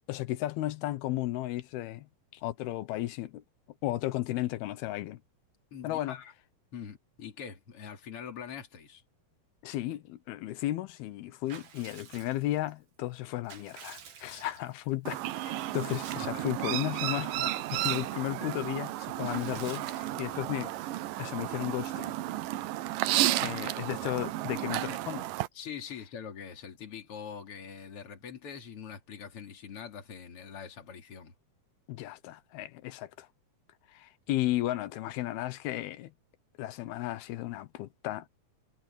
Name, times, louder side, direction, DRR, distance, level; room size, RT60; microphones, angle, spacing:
voice 1, 0.1-3.4 3.8-5.2 5.8-6.2 9.6-20.7 21.2-22.1 23.4-25.3 31.9-33.3 33.9-36.1 36.6-38.3, left 15 dB, 90° left, 2.9 m, -34 dB
voice 2, 5.7-6.3 6.7-9.0 16.3-16.4 25.5-31.3, left 7 dB, 40° left, 3.2 m, -43 dB
Water / Bathtub (filling or washing) / Liquid, 11.5-12.7 13.2-14.9 15.5-16.5 16.9-17.0 17.3-18.5 19.2-20.5, right 7 dB, 60° right, 3.9 m, -49 dB
Chirp tweet, 15.1-25.5, right 15 dB, 80° right, 2.2 m, -33 dB
omnidirectional pair, 4.3 m